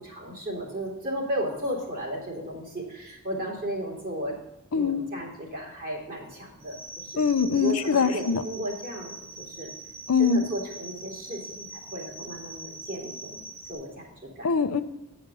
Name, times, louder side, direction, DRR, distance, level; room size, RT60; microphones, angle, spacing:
voice 1, 0.0-4.4 4.7-7.2 7.5-9.7 10.2-13.4 13.7-14.5, equal, 45° right, -2 dB, 2.8 m, -34 dB
voice 2, 4.7-5.1 7.2-8.4 10.1-10.5 14.4-14.8, left 5 dB, 85° left, 10 dB, 0.6 m, -23 dB
sound 1, 6.6-13.7, right 2 dB, 85° right, 2.3 m, -43 dB
9.4 x 5.0 x 6.7 m, 0.96 s
head